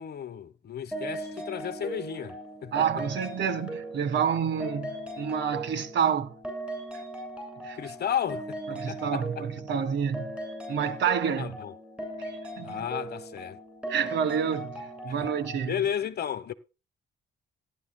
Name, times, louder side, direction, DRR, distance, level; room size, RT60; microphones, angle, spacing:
voice 1, 0.0-2.7 7.8-9.2 11.4-11.7 12.6-13.6 15.1-15.3 15.7-16.5, left 9 dB, 55° left, 1.1 m, -33 dB
sound 1, 0.9-15.7, right 1 dB, 5° right, 7.7 m, -39 dB
voice 2, 2.7-6.3 6.9-7.0 7.6-7.8 8.7-10.3 10.7-11.6 12.2-12.9 13.9-15.7, right 7 dB, 65° right, 1.5 m, -29 dB
17.0 x 11.0 x 2.2 m
cardioid pair, 90°, 20 cm